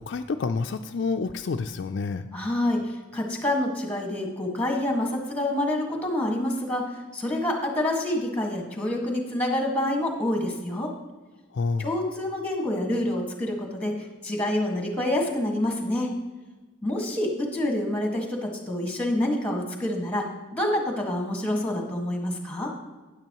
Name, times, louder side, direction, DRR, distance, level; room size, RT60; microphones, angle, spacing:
voice 1, 0.0-2.3 11.5-11.9, left 4 dB, 60° left, 7 dB, 0.4 m, -28 dB
voice 2, 2.3-6.8 7.1-10.9 11.8-16.1 16.8-20.3 20.5-22.7, left 1 dB, 5° left, 1 dB, 1.7 m, -27 dB
12.5 x 9.8 x 3.0 m, 1.3 s
head